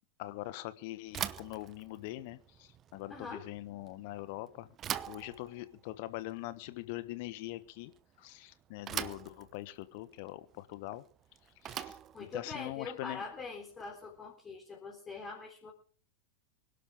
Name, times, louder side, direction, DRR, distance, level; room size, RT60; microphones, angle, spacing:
voice 1, 0.2-4.7 5.1-7.9 8.2-11.0 11.6-13.2, left 17 dB, 50° left, 14 dB, 1.2 m, -43 dB
Bicycle / Thump thud, 1.1-14.2, right 10 dB, 30° right, 0.9 m, -44 dB
voice 2, 3.1-3.4 12.1-15.7, left 4 dB, 20° left, -1 dB, 3.9 m, -43 dB
25.0 x 12.0 x 3.7 m, 0.42 s
figure-of-eight pair, 90°, 0 cm